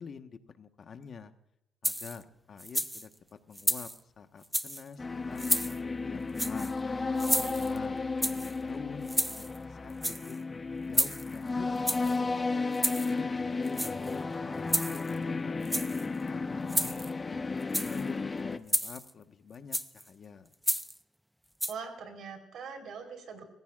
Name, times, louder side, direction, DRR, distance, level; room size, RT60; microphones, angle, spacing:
voice 1, 0.0-1.3 1.8-3.1 3.5-3.9 4.2-6.8 7.5-12.4 12.8-13.3 13.8-15.6 16.3-20.5, left 6 dB, 50° left, 8 dB, 1.3 m, -47 dB
sound 1, 1.8-2.2 2.6-3.1 3.6-4.0 4.4-4.8 5.4-5.8 6.4-6.7 7.2-7.8 8.2-8.5 9.1-9.6 9.9-10.4 10.9-11.4 11.9-12.2 12.7-13.1 13.7-14.2 14.7-15.2 15.6-16.0 16.7-17.1 17.6-18.0 18.7-19.1 19.7-20.0 20.6-21.0 21.6-21.7, equal, ahead, 0.6 m, -31 dB
sound 2, 5.0-18.6, left 3 dB, 30° left, 0.8 m, -33 dB
voice 2, 7.0-7.9 21.7-23.4, right 5 dB, 70° right, 5 dB, 4.1 m, -43 dB
26.5 x 15.5 x 2.5 m, 0.89 s
cardioid pair, 90°, 0 cm